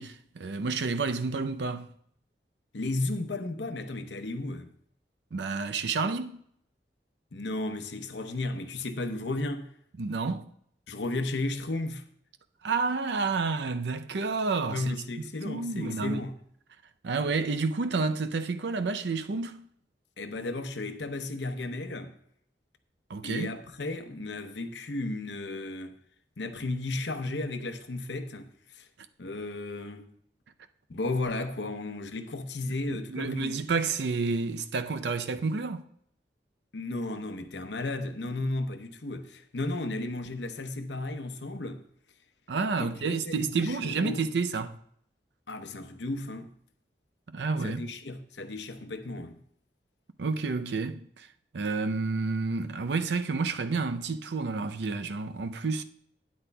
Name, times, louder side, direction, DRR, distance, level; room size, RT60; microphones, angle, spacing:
voice 1, 0.0-1.9 5.3-6.4 10.0-10.5 12.6-15.0 15.4-16.2 17.0-19.7 23.1-23.5 32.9-35.8 42.5-44.8 47.3-47.8 50.2-51.3 51.5-55.8, right 4 dB, 80° right, 0.5 m, -30 dB
voice 2, 2.7-4.7 7.3-9.7 10.9-12.0 14.7-16.3 20.2-22.1 23.2-26.0 26.4-28.9 29.2-30.1 30.9-33.6 36.7-41.8 42.8-44.3 45.5-46.5 47.6-49.4, left 2 dB, 90° left, 0.8 m, -34 dB
12.0 x 9.4 x 2.3 m
head